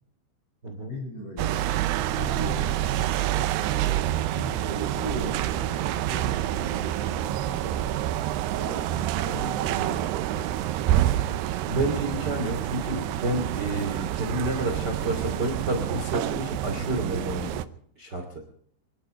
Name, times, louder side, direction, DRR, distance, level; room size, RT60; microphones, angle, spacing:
voice 1, 0.9-1.6 2.0-8.1 8.5-11.5 14.4-15.5, left 1 dB, 65° left, -5 dB, 9.2 m, -40 dB
sound 1, 1.4-17.6, right 13 dB, 80° right, 2.5 m, -27 dB
voice 2, 11.6-17.6 18.0-18.4, right 1 dB, 30° right, 4 dB, 2.3 m, -30 dB
25.0 x 12.5 x 4.4 m, 0.63 s
omnidirectional pair, 5.6 m